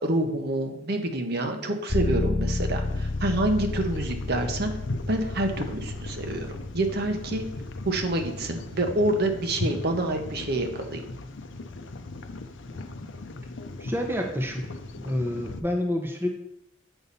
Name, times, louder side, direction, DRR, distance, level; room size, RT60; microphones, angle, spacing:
voice 1, 0.0-4.7 5.1-7.5 7.8-11.0, right 1 dB, 55° right, 5 dB, 1.0 m, -27 dB
sound 1, 1.9-9.6, left 2 dB, 20° left, 0.3 m, -32 dB
sound 2, 2.8-15.6, left 2 dB, 85° left, 0.6 m, -38 dB
voice 2, 13.8-14.7 15.0-16.3, left 1 dB, 10° right, 2 dB, 0.8 m, -28 dB
8.0 x 5.6 x 4.1 m, 0.77 s
head